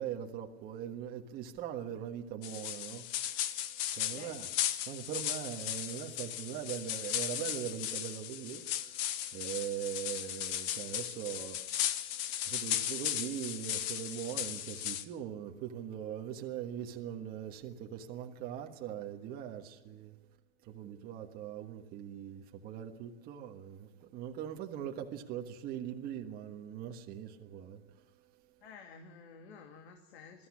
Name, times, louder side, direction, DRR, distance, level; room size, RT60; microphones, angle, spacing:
voice 1, 0.0-3.1 3.9-4.5 4.9-9.0 9.3-11.6 12.4-20.2 20.6-27.8, right 10 dB, 30° right, 1.5 m, -41 dB
sound 1, 2.4-15.0, left 12 dB, 40° left, 1.2 m, -36 dB
voice 2, 28.6-30.5, left 5 dB, 70° left, 2.7 m, -52 dB
21.5 x 14.5 x 9.7 m
supercardioid pair, 160°, 33 cm